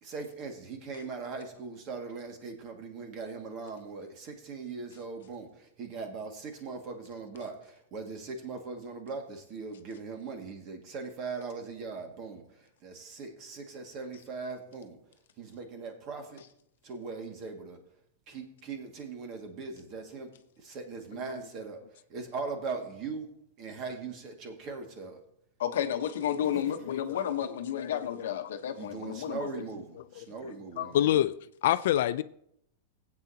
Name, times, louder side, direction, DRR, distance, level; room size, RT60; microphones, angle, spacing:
voice 1, 0.0-12.4 12.8-15.0 15.4-16.4 16.8-17.8 18.3-20.3 20.6-21.8 22.1-23.3 23.6-25.2 26.5-26.7 28.8-31.2, right 4 dB, 40° right, 2.0 m, -40 dB
voice 2, 25.6-29.5, left 9 dB, 85° left, 1.0 m, -32 dB
voice 3, 26.5-28.3 29.0-29.1 29.6-29.7 30.0-30.1 30.8-31.3 31.6-32.2, left 12 dB, 65° left, 0.4 m, -29 dB
16.5 x 8.5 x 2.8 m
supercardioid pair, 150°, 0 cm